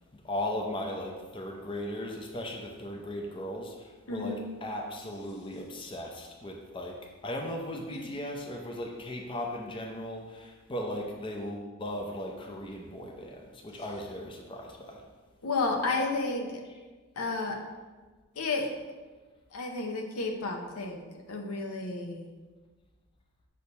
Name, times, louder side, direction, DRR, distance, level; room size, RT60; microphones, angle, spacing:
voice 1, 0.2-7.0 7.2-15.0, left 1 dB, 25° left, 0 dB, 0.5 m, -37 dB
voice 2, 4.1-4.5 7.9-8.1 15.4-16.6 17.2-17.6 18.4-18.7 19.5-22.3, left 3 dB, 85° left, 2 dB, 0.7 m, -32 dB
6.4 x 2.8 x 5.3 m, 1.3 s
head